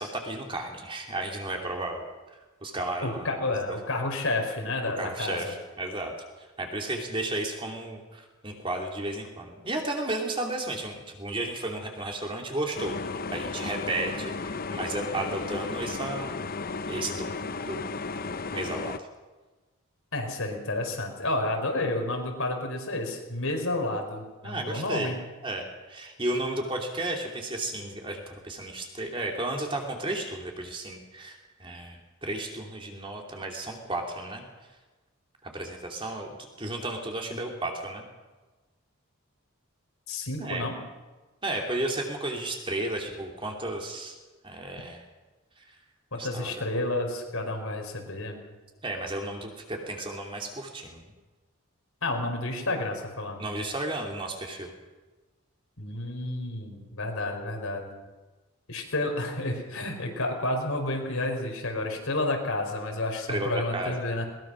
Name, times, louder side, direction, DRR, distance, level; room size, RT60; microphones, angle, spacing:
voice 1, 0.0-2.0 2.6-3.6 5.0-6.1 6.4-13.0 13.3-16.5 16.9-17.9 18.5-19.1 24.4-25.2 25.4-34.4 35.4-36.3 36.6-38.0 40.4-40.6 41.4-44.2 44.4-45.0 45.6-45.7 46.1-46.5 48.8-51.1 53.4-54.7 63.3-63.9, right 2 dB, 25° right, 1 dB, 2.8 m, -33 dB
voice 2, 3.0-5.5 20.1-25.2 40.1-40.8 46.1-48.4 52.0-53.4 55.8-57.9 58.7-64.2, left 2 dB, 70° left, 2 dB, 4.4 m, -30 dB
sound 1, 12.7-19.0, left 4 dB, 40° left, 0.7 m, -34 dB
21.0 x 20.0 x 6.2 m, 1.2 s
head